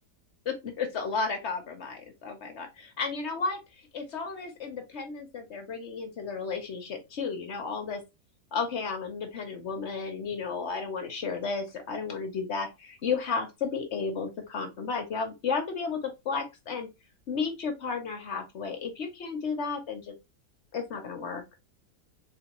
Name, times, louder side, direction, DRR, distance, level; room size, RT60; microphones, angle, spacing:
voice 1, 0.5-8.0 8.5-16.0 16.2-16.9 17.3-20.1 20.7-21.4, left 5 dB, 55° left, 5 dB, 0.8 m, -33 dB
3.8 x 3.3 x 2.9 m, 0.24 s
omnidirectional pair, 1.8 m